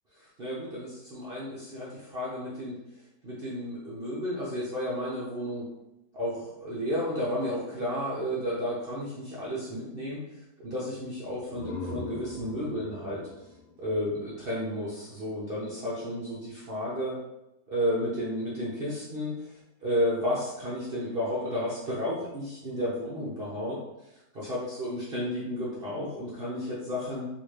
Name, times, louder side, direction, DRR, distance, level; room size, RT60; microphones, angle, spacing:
voice 1, 0.2-2.8 3.2-5.7 6.1-10.2 10.6-13.5 13.8-17.1 17.7-27.3, equal, 70° right, -7 dB, 0.5 m, -32 dB
sound 1, 11.5-14.9, left 3 dB, 85° left, 1.4 m, -41 dB
3.7 x 2.5 x 3.2 m, 0.89 s
omnidirectional pair, 2.1 m